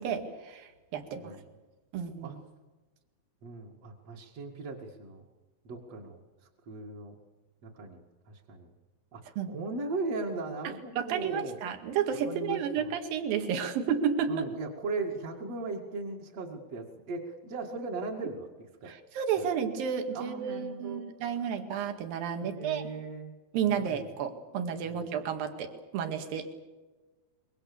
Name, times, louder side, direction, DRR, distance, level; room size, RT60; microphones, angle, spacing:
voice 1, 0.0-1.3 1.9-2.4 9.4-9.5 10.6-14.5 18.9-22.8 23.5-26.6, right 7 dB, 65° right, 6 dB, 3.7 m, -32 dB
voice 2, 3.4-5.2 5.6-6.2 6.7-7.1 7.6-8.7 9.1-11.6 12.2-12.8 14.3-18.5 18.8-18.9 19.4-19.5 20.1-21.1 22.4-23.3 23.7-24.0 24.8-25.0, right 3 dB, 45° right, -3 dB, 2.9 m, -38 dB
26.0 x 23.5 x 7.0 m, 1.2 s
omnidirectional pair, 4.5 m